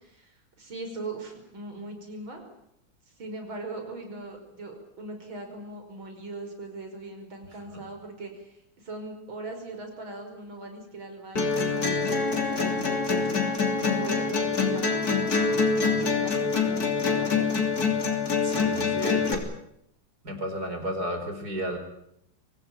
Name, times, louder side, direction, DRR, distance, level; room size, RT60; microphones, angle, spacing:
voice 1, 0.0-2.4 3.2-13.2 13.8-15.4 15.7-17.6, right 2 dB, 80° right, 4 dB, 6.2 m, -40 dB
sound 1, 11.4-19.3, left 4 dB, 50° left, 3.6 m, -25 dB
voice 2, 18.4-19.4 20.2-21.8, right 1 dB, 50° right, 6 dB, 5.2 m, -33 dB
24.5 x 18.0 x 8.8 m, 0.76 s
omnidirectional pair, 2.2 m